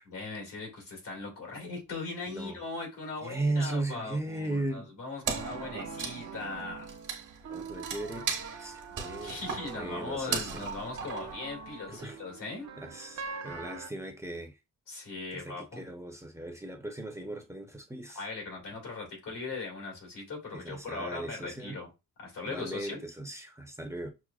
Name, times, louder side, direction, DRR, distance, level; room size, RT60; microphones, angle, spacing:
voice 1, 0.1-6.9 9.2-12.7 14.9-15.8 18.1-21.9 22.2-23.0, left 3 dB, 80° left, 1.9 m, -39 dB
voice 2, 3.2-4.9 7.5-9.4 9.7-10.5 11.9-12.2 12.8-14.5 15.3-18.2 20.5-21.8 22.5-24.1, right 2 dB, 10° right, 0.6 m, -37 dB
sound 1, 5.3-13.9, right 5 dB, 55° right, 0.6 m, -44 dB
Wood, 5.3-12.0, right 6 dB, 70° right, 1.1 m, -38 dB
6.0 x 2.1 x 2.3 m
cardioid pair, 125°, 32 cm